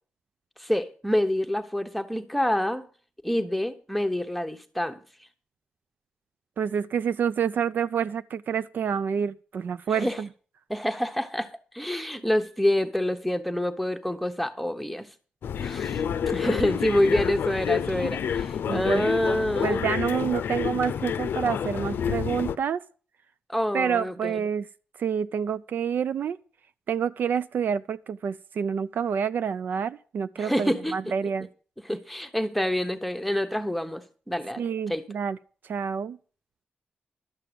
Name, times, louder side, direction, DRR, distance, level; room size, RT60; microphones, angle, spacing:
voice 1, 0.6-2.9 3.2-5.0 9.9-10.2 10.7-15.1 15.6-19.9 23.5-24.4 30.4-30.9 31.8-34.6 34.9-35.1, left 1 dB, ahead, 1.0 m, -27 dB
voice 2, 6.6-10.3 18.7-19.1 19.6-22.8 23.7-24.7 25.0-26.4 26.9-31.5 34.6-35.4 35.6-36.2, right 7 dB, 65° right, 0.4 m, -28 dB
sound 1, 15.4-22.6, left 8 dB, 80° left, 0.6 m, -29 dB
12.0 x 7.6 x 6.8 m
wide cardioid pair, 140°, 4 cm